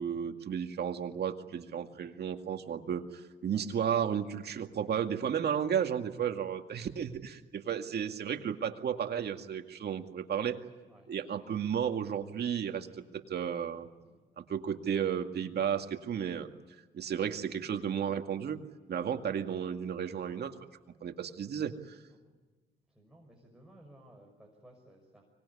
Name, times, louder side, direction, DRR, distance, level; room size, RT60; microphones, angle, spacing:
voice 1, 0.0-10.6 11.1-13.9 14.4-16.5 16.9-18.6 18.9-20.5 21.0-22.0, right 8 dB, 55° right, 5 dB, 2.1 m, -33 dB
voice 2, 12.8-13.5 14.0-14.2 22.1-22.4 22.9-25.2, right 1 dB, 5° right, -1 dB, 5.9 m, -59 dB
24.5 x 20.0 x 9.9 m, 1.3 s
cardioid pair, 90°, 20 cm